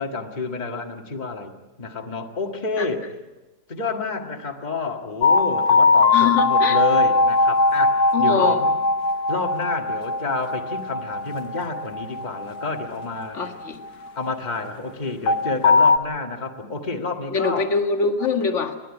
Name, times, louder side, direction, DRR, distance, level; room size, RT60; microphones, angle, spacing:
voice 1, 0.0-1.5 1.8-3.0 3.7-8.7 9.3-13.4 14.2-17.7, left 3 dB, 25° left, 3 dB, 1.9 m, -29 dB
sound 1, 5.2-14.3 15.3-16.0, left 3 dB, 70° left, 1.6 m, -20 dB
voice 2, 6.1-6.8 8.1-8.6 13.3-13.8 17.3-18.7, left 5 dB, 45° left, 4 dB, 2.1 m, -23 dB
30.0 x 12.0 x 9.9 m, 1.1 s
omnidirectional pair, 1.8 m